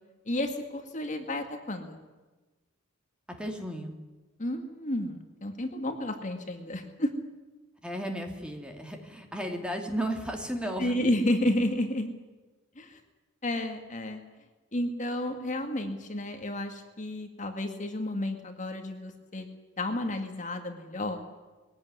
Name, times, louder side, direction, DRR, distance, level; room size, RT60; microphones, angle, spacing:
voice 1, 0.3-2.0 4.4-7.1 10.8-12.1 12.8-13.0 13.4-14.2 14.7-19.5 19.8-21.2, left 1 dB, 35° left, 5 dB, 2.1 m, -31 dB
voice 2, 3.4-4.0 7.8-11.0, equal, 5° right, 3 dB, 2.7 m, -34 dB
22.0 x 17.5 x 9.6 m, 1.2 s
head